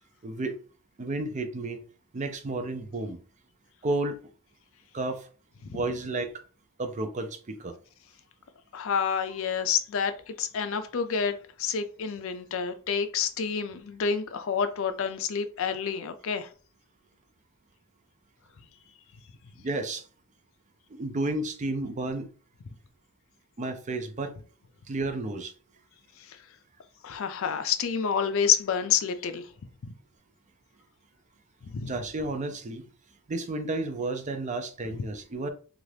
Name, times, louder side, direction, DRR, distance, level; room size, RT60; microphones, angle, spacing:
voice 1, 0.2-0.5 1.0-1.8 2.1-3.2 3.8-4.2 4.9-5.3 5.7-6.4 6.8-7.7 19.6-20.0 20.9-22.3 23.6-24.3 24.9-25.5 31.8-32.9 33.3-35.5, right 2 dB, 35° right, 0.4 m, -32 dB
voice 2, 8.7-16.5 27.0-29.4 31.6-31.9, left 7 dB, 65° left, 0.4 m, -28 dB
2.7 x 2.4 x 3.2 m
head